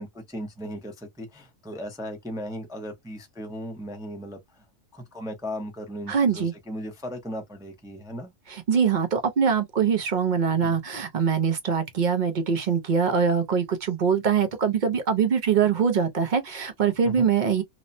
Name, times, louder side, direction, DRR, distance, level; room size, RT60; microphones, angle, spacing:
voice 1, 0.0-4.6 4.9-8.3 10.6-10.7 17.0-17.3, equal, 5° right, 0.3 m, -37 dB
voice 2, 6.1-6.5 8.5-17.6, right 6 dB, 75° right, 0.4 m, -23 dB
2.9 x 2.0 x 2.5 m
omnidirectional pair, 1.5 m